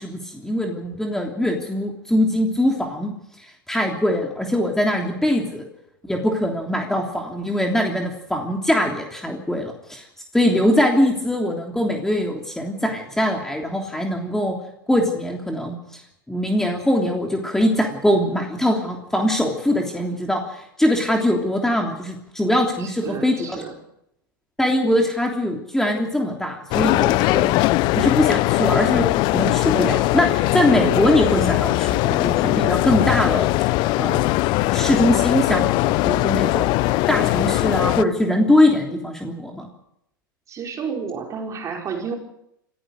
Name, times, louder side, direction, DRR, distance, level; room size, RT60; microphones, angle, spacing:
voice 1, 0.0-3.1 3.4-5.7 6.1-10.1 10.3-14.5 14.9-16.0 16.3-23.5 24.6-27.6 27.9-29.1 29.3-33.5 34.0-34.2 34.7-36.8 37.1-39.7, left 1 dB, 5° left, 1 dB, 3.2 m, -22 dB
voice 2, 22.8-23.8 40.5-42.2, right 6 dB, 30° right, 1 dB, 5.4 m, -31 dB
sound 1, 26.7-38.0, left 19 dB, 45° left, 0.8 m, -20 dB
28.5 x 16.0 x 6.5 m, 0.79 s
hypercardioid pair, 95°, 11 cm